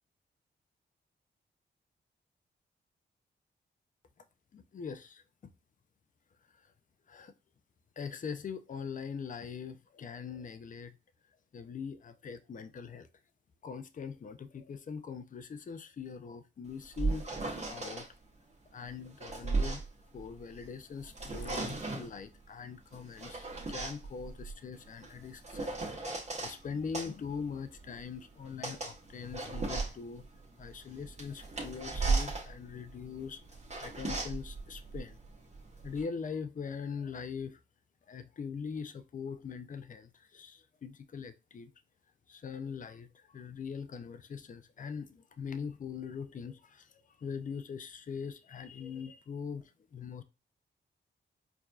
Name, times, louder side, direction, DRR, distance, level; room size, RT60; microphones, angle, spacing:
voice 1, 4.5-5.2 6.5-6.7 7.1-7.3 8.0-11.0 11.5-13.1 13.6-18.1 18.7-19.8 20.1-25.7 26.0-30.2 30.6-33.4 33.8-35.2 35.8-37.6 38.1-41.7 42.3-50.2, left 6 dB, 45° left, 0.5 m, -42 dB
sound 1, 16.7-18.1 18.9-20.7 21.0-22.2 22.9-26.6 26.9-36.0, right 3 dB, 35° right, 1.4 m, -36 dB
4.6 x 2.7 x 2.3 m
cardioid pair, 65°, 19 cm